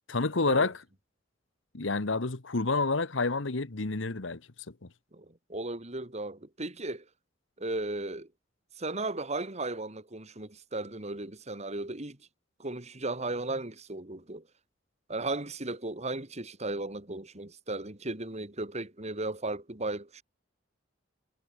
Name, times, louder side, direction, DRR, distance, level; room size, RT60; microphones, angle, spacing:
voice 1, 0.1-0.8 1.7-4.4 4.8-4.9, left 3 dB, 70° left, 1.3 m, -28 dB
voice 2, 5.1-7.0 7.6-8.3 8.8-12.2 12.6-14.4 15.1-20.2, right 2 dB, 35° right, 2.6 m, -36 dB
head